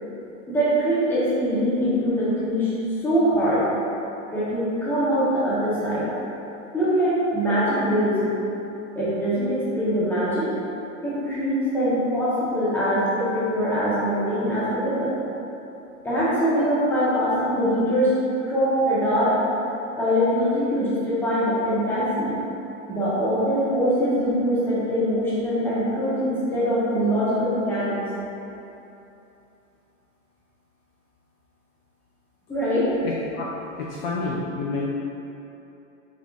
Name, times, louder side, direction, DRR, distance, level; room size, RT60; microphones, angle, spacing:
voice 1, 0.5-2.7 3.0-3.6 4.3-6.1 6.7-8.3 8.9-10.5 11.0-15.1 16.0-18.1 18.5-19.4 19.9-22.3 22.9-28.0 32.5-32.9, equal, 5° left, -11 dB, 1.0 m, -23 dB
voice 2, 33.0-34.8, left 3 dB, 50° left, -4 dB, 0.4 m, -30 dB
3.4 x 3.4 x 2.3 m, 2.9 s
hypercardioid pair, 110°, 39 cm